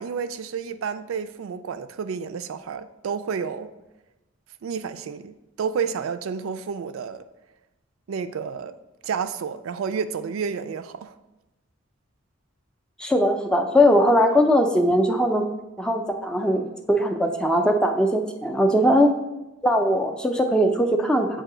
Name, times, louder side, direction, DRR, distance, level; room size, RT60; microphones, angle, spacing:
voice 1, 0.0-3.7 4.6-7.3 8.1-8.8 9.0-11.1 18.9-19.0, right 6 dB, 80° right, 0.3 m, -30 dB
voice 2, 13.0-15.5 15.8-16.6 16.9-19.1 19.6-21.3, equal, 5° left, 0.4 m, -20 dB
7.5 x 2.7 x 4.9 m
head